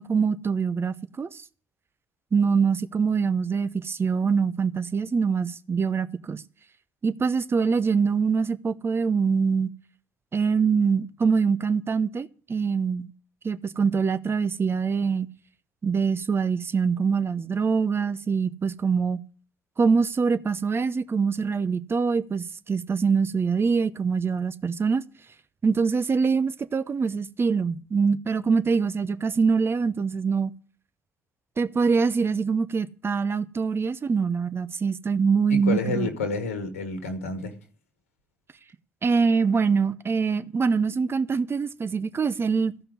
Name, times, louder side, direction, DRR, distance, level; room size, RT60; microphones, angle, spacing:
voice 1, 0.0-1.4 2.3-6.4 7.0-9.7 10.3-13.1 13.4-15.3 15.8-19.2 19.8-25.0 25.6-30.5 31.6-36.1 39.0-42.7, right 5 dB, 35° right, 0.9 m, -24 dB
voice 2, 35.5-37.6, left 3 dB, 85° left, 1.5 m, -29 dB
14.5 x 5.6 x 9.7 m
figure-of-eight pair, 45°, 7 cm